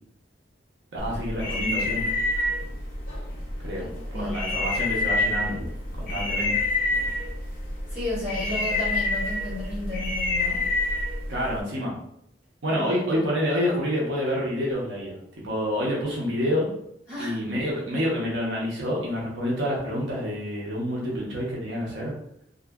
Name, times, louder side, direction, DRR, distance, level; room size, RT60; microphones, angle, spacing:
voice 1, 0.9-2.0 3.6-5.7 6.0-6.5 11.3-11.9 12.6-15.1 15.4-16.7 17.2-22.1, equal, 85° right, -4 dB, 0.8 m, -28 dB
sound 1, 1.0-11.6, left 2 dB, 50° left, 0.8 m, -28 dB
voice 2, 3.8-4.4 7.9-10.7 12.7-13.3 17.1-17.4, left 1 dB, 10° right, -15 dB, 1.5 m, -33 dB
2.6 x 2.4 x 2.3 m, 0.74 s
head